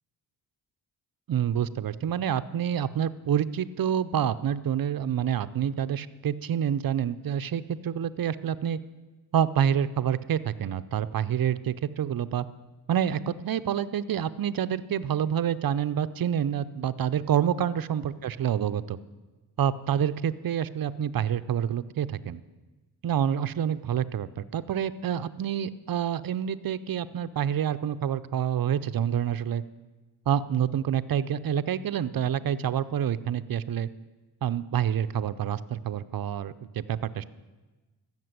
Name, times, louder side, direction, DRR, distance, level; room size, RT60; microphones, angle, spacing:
voice 1, 1.3-8.8 9.3-12.5 12.9-19.0 19.6-22.4 23.0-29.6 30.3-33.9 34.4-37.3, right 9 dB, 55° right, 14 dB, 0.6 m, -27 dB
13.5 x 7.4 x 9.6 m, 1.2 s
wide cardioid pair, 90°, 42 cm